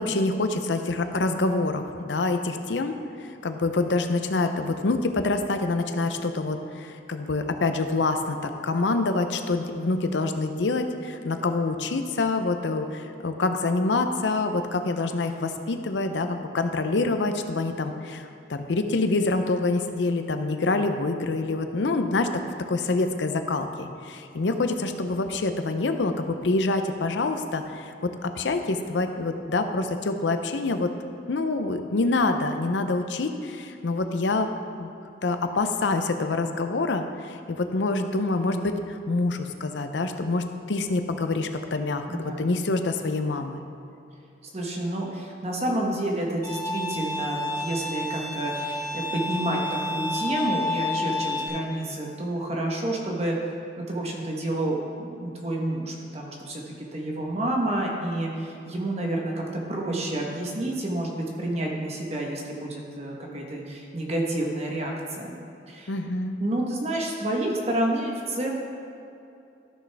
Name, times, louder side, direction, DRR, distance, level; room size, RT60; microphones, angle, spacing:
voice 1, 0.0-22.3 22.7-30.9 31.3-34.5 34.8-34.9 35.2-43.6 65.9-66.4, left 3 dB, 90° left, 7 dB, 0.6 m, -26 dB
voice 2, 42.1-42.4 44.5-53.4 53.8-65.3 65.7-65.9 66.4-68.5, right 1 dB, 35° right, -1 dB, 1.1 m, -29 dB
Bowed string instrument, 46.4-51.5, left 2 dB, 20° left, 2.0 m, -30 dB
13.5 x 6.2 x 3.4 m, 2.7 s
head